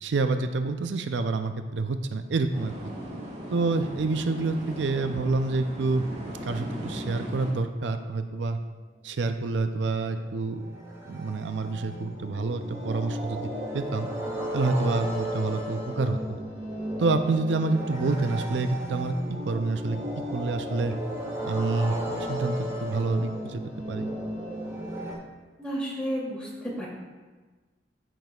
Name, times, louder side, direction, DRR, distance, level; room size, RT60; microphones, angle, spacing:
voice 1, 0.0-2.7 3.5-8.6 9.0-10.6 11.1-14.1 14.5-16.4 17.0-20.0 20.3-20.9 21.4-21.9 22.3-23.6 23.9-24.1, right 3 dB, 80° right, 8 dB, 0.5 m, -28 dB
sound 1, 2.5-7.5, equal, 40° right, 2.1 m, -38 dB
sound 2, 9.6-25.1, equal, 20° right, 2.0 m, -35 dB
voice 2, 25.6-26.9, equal, 5° left, -6 dB, 2.7 m, -32 dB
13.5 x 6.0 x 2.4 m, 1.3 s
head